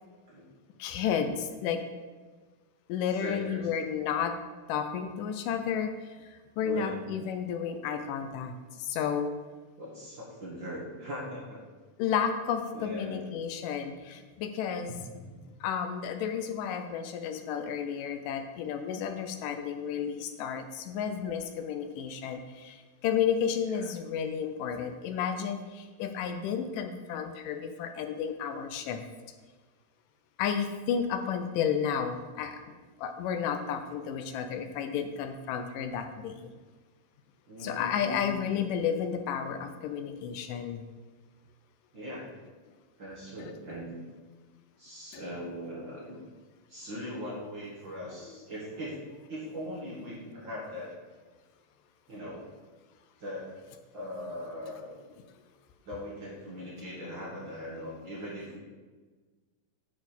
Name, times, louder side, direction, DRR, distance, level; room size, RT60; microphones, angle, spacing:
voice 1, 0.8-1.8 2.9-4.4 4.7-9.3 12.0-15.0 15.6-29.0 30.4-32.6 33.0-36.5 37.6-40.8 43.4-43.5 45.1-45.2 48.3-48.4, left 7 dB, 80° left, 7 dB, 2.1 m, -32 dB
voice 2, 3.1-3.7 6.6-7.1 9.8-11.6 12.7-13.3 15.1-15.3 23.7-23.8 37.5-38.4 41.9-42.3 43.0-44.0 44.8-46.2 46.7-49.0 49.3-51.0 52.1-52.5 53.2-53.5 53.9-55.0 55.9-58.6, equal, 45° right, -6 dB, 1.7 m, -40 dB
8.8 x 4.1 x 7.0 m, 1.4 s
omnidirectional pair, 3.9 m